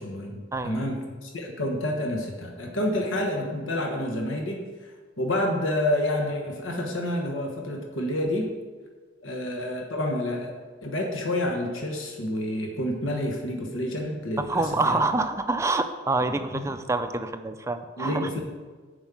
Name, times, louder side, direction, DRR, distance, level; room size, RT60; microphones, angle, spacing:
voice 1, 0.0-4.6 5.2-8.5 9.2-10.5 10.8-15.0 16.2-16.7 18.0-18.4, left 1 dB, 80° left, 1 dB, 1.2 m, -29 dB
voice 2, 0.5-0.9 14.4-18.3, right 2 dB, 15° right, 8 dB, 0.4 m, -27 dB
7.2 x 5.3 x 7.3 m, 1.5 s
head